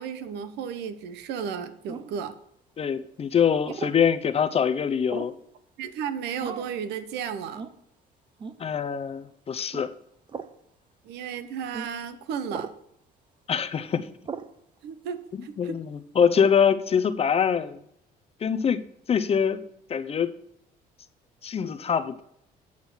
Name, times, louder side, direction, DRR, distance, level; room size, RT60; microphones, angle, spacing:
voice 1, 0.0-2.3 5.8-7.6 11.0-12.7 14.8-15.8, right 7 dB, 85° right, 0.9 m, -34 dB
sound 1, 1.9-2.2 3.6-4.0 5.1-5.4 6.4-6.8 7.5-7.8 8.4-8.6 9.7-9.9 10.3-10.5 11.7-11.9 12.5-12.8 14.2-14.5, right 5 dB, 30° right, 0.7 m, -37 dB
voice 2, 2.8-5.3 8.6-9.9 13.5-14.1 15.3-17.8 18.4-18.8 19.1-19.6 19.9-20.3 21.4-22.2, left 7 dB, 35° left, 0.7 m, -24 dB
9.0 x 6.0 x 5.7 m
cardioid pair, 110°, 17 cm